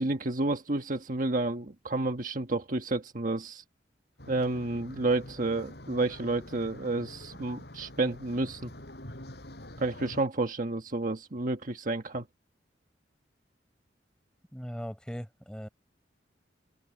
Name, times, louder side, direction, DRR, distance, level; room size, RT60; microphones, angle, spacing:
voice 1, 0.0-3.6 4.3-8.7 9.8-12.3, right 2 dB, 50° right, 1.4 m, -30 dB
sound 1, 4.2-10.2, left 1 dB, 65° left, 5.8 m, -46 dB
voice 2, 14.5-15.7, equal, 5° left, 6.7 m, -39 dB
open air
head